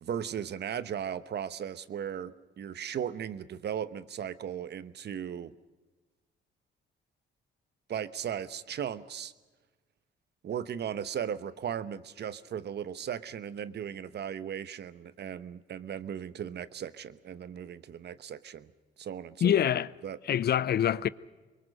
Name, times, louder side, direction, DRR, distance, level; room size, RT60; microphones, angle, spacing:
voice 1, 0.0-5.5 7.9-9.3 10.4-18.7 19.0-19.5 20.0-20.2, right 9 dB, 55° right, 1.0 m, -37 dB
voice 2, 19.4-19.9 20.2-21.1, left 9 dB, 55° left, 0.6 m, -25 dB
24.0 x 21.5 x 6.5 m
cardioid pair, 90°, 20 cm